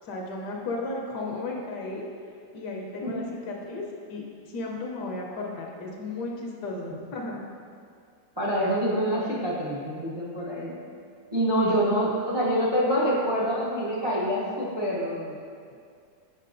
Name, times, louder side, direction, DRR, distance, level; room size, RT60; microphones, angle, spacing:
voice 1, 0.0-2.1 2.5-7.5 11.6-12.0 15.7-15.8, left 2 dB, 70° left, -1 dB, 1.2 m, -35 dB
voice 2, 8.4-10.7 11.3-15.4, equal, 40° right, -7 dB, 0.3 m, -26 dB
6.6 x 5.8 x 2.5 m, 2.2 s
omnidirectional pair, 2.0 m